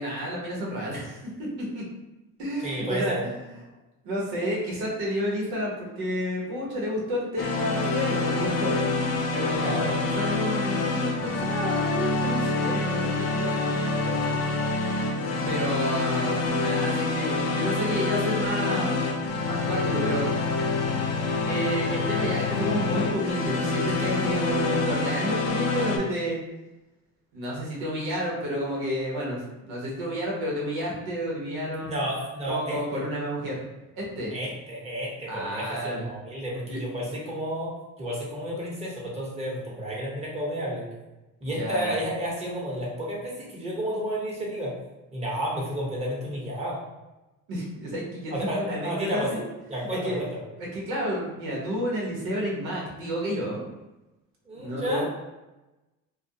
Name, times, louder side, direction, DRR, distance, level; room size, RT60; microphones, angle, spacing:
voice 1, 0.0-1.8 2.4-3.4 4.0-8.8 9.3-14.4 15.5-19.0 19.4-20.3 20.6-21.0 21.5-26.4 27.3-29.4 29.7-32.0 32.5-33.6 33.9-34.3 35.3-36.1 36.7-36.8 41.6-42.0 47.5-49.5 50.0-50.2 50.6-53.6 54.6-55.0, equal, 90° right, -4 dB, 0.9 m, -30 dB
voice 2, 2.6-3.2 9.6-10.0 31.8-33.0 34.3-37.7 38.0-40.9 41.4-44.7 45.1-46.8 48.3-49.3 49.7-50.4 54.5-55.0, equal, 15° right, -5 dB, 0.9 m, -31 dB
sound 1, 7.4-26.0, left 3 dB, 45° left, 0.5 m, -26 dB
2.3 x 2.2 x 2.7 m, 1.0 s
cardioid pair, 95°, 37 cm